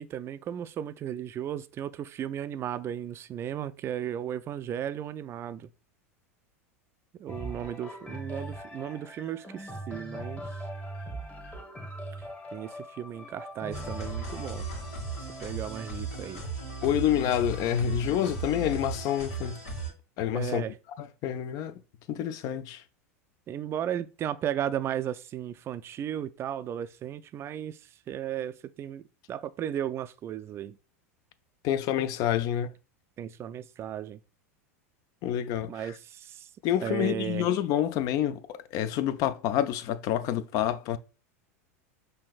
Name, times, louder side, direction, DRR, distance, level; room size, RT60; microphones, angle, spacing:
voice 1, 0.0-5.7 7.2-10.5 12.5-14.7 15.2-16.4 20.3-20.8 23.5-27.8 28.1-29.0 29.3-30.8 33.2-34.2 35.6-36.5 36.8-37.5, right 10 dB, 30° right, 0.3 m, -35 dB
sound 1, 7.3-17.1 17.7-17.8, right 1 dB, 15° left, 1.1 m, -41 dB
sound 2, 13.7-19.9, right 2 dB, 75° left, 1.9 m, -36 dB
voice 2, 16.8-19.6 20.2-20.6 21.0-21.7 22.1-22.8 31.6-32.7 35.2-35.9 36.6-41.0, left 10 dB, 50° left, 0.4 m, -28 dB
5.6 x 2.6 x 2.3 m
hypercardioid pair, 95°, 8 cm